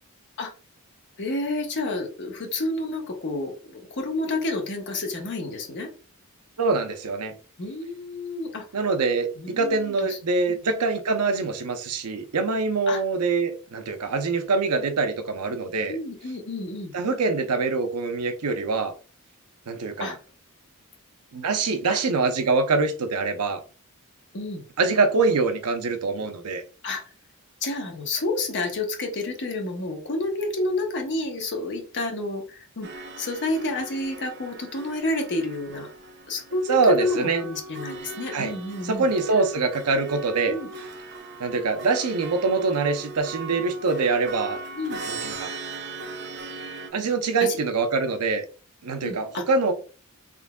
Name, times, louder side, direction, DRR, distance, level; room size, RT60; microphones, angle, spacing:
voice 1, 1.2-5.9 7.6-8.6 9.4-10.2 10.5-10.6 12.9-13.0 15.9-16.9 20.0-20.2 21.9-22.0 24.3-24.6 26.8-27.0 27.6-35.9 36.3-39.1 40.5-40.7 44.8-45.0 47.4-47.6 49.0-49.4, left 2 dB, 55° left, 1.0 m, -30 dB
voice 2, 6.6-7.4 8.7-16.0 16.9-18.9 19.7-20.2 21.3-23.6 24.8-26.6 36.7-37.4 38.3-38.5 38.8-40.6 41.4-44.6 45.1-45.5 46.9-48.4 48.8-49.7, right 4 dB, 85° right, 0.6 m, -24 dB
sound 1, 32.8-46.9, right 3 dB, 50° right, 0.7 m, -39 dB
3.8 x 3.5 x 2.2 m
head